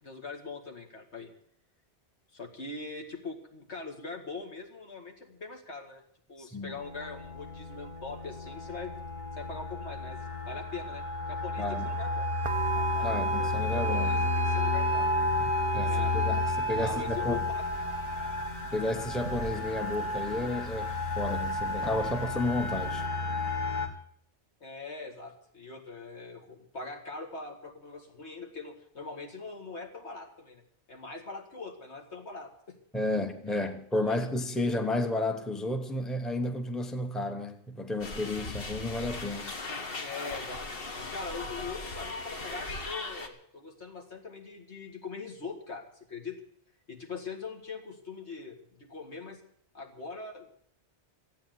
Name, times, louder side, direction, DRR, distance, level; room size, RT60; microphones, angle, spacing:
voice 1, 0.0-1.3 2.3-6.0 6.3-8.9 9.4-12.3 12.7-15.1 15.8-16.1 16.8-17.7 24.6-30.6 30.9-32.8 33.5-33.6 34.0-34.2 40.0-40.7 40.9-46.4 46.9-49.4 49.7-50.5, left 4 dB, 70° left, 2.4 m, -42 dB
voice 2, 6.4-6.8 11.6-11.9 13.0-14.3 15.7-17.4 18.7-23.1 32.9-39.5, left 2 dB, ahead, 1.0 m, -32 dB
sound 1, 6.7-23.9, left 2 dB, 40° left, 1.6 m, -32 dB
sound 2, 12.4-23.1, right 7 dB, 55° right, 0.9 m, -38 dB
sound 3, 38.0-43.3, left 3 dB, 55° left, 1.6 m, -38 dB
14.0 x 8.8 x 9.2 m
omnidirectional pair, 1.2 m